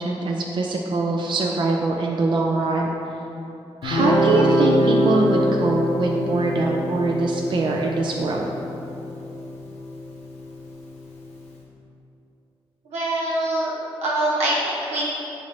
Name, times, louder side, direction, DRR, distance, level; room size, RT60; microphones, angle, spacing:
voice 1, 0.0-2.9 3.8-8.5, right 3 dB, 45° right, 0 dB, 0.4 m, -23 dB
Guitar, 3.8-11.0, equal, 85° left, 0.6 m, -24 dB
voice 2, 12.9-13.7 14.0-15.0, right 1 dB, 85° right, -6 dB, 1.0 m, -23 dB
5.4 x 2.5 x 3.2 m, 2.8 s
cardioid pair, 55°, 11 cm